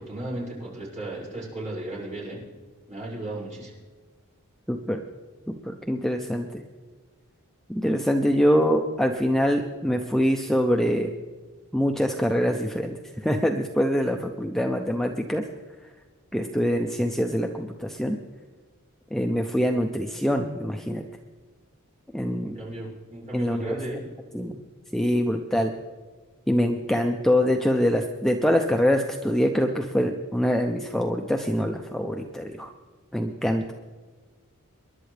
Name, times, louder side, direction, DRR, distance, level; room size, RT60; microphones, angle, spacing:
voice 1, 0.0-2.4 2.9-3.7 22.4-24.0, right 1 dB, 35° right, -6 dB, 5.9 m, -35 dB
voice 2, 4.7-5.0 5.5-6.6 7.7-11.1 11.7-15.4 16.3-18.2 19.1-21.0 22.1-22.6 23.3-24.0 24.3-24.6 24.9-25.7 26.5-32.7 33.1-33.7, equal, ahead, 3 dB, 0.6 m, -24 dB
27.5 x 11.5 x 3.3 m, 1.4 s
head